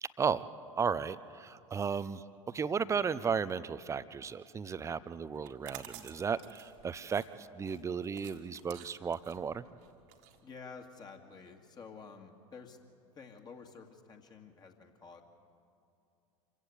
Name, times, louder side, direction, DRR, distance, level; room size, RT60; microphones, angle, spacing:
voice 1, 0.0-0.5 0.8-9.6, right 6 dB, 15° right, 16 dB, 0.7 m, -34 dB
sound 1, 5.3-11.1, right 12 dB, 50° right, 1.8 m, -52 dB
voice 2, 10.4-12.8 13.1-15.2, left 5 dB, 25° left, 3 dB, 2.2 m, -50 dB
26.5 x 16.0 x 8.5 m, 2.6 s
figure-of-eight pair, 80°, 18 cm